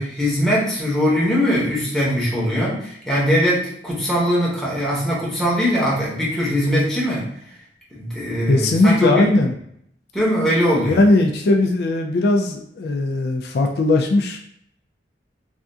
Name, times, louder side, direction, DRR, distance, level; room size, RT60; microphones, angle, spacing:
voice 1, 0.0-7.3 7.9-9.3 10.1-11.0, equal, ahead, -7 dB, 0.8 m, -21 dB
voice 2, 8.5-9.5 10.9-14.4, left 2 dB, 65° left, 2 dB, 0.3 m, -18 dB
3.3 x 2.4 x 2.6 m, 0.70 s
head